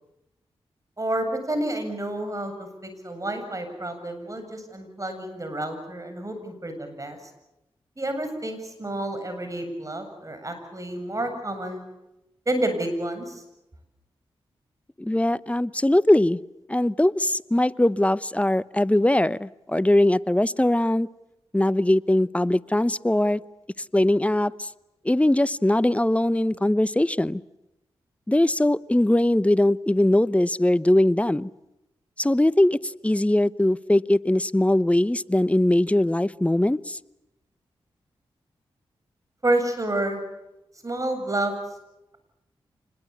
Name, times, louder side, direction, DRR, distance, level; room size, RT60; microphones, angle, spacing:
voice 1, 1.0-7.2 8.0-11.8 12.5-13.4 39.4-40.2 40.8-41.5, right 1 dB, 30° right, 7 dB, 7.8 m, -29 dB
voice 2, 15.0-16.4 16.7-21.1 21.5-23.4 23.9-24.7 25.0-27.4 28.3-31.5 32.2-32.8 33.0-37.0, left 1 dB, 10° left, 18 dB, 0.8 m, -21 dB
26.0 x 21.0 x 8.5 m, 0.92 s
cardioid pair, 45°, 10 cm